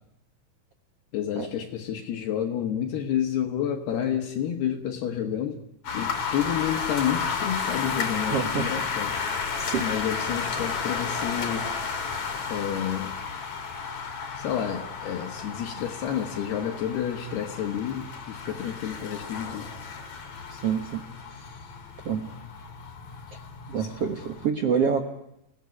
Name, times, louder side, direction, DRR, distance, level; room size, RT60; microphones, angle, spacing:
voice 1, 1.1-5.6 5.9-9.2 9.8-11.7 12.5-13.2 14.4-19.7 22.4-22.5 23.8-23.9, left 9 dB, 70° left, 3 dB, 3.4 m, -30 dB
sound 1, 5.8-24.5, left 5 dB, 45° left, 3.5 m, -33 dB
voice 2, 8.3-8.7 9.6-9.8 20.5-21.0 22.0-22.3 23.7-25.0, right 7 dB, 80° right, 6 dB, 1.3 m, -27 dB
29.0 x 17.5 x 9.7 m, 0.83 s
omnidirectional pair, 5.1 m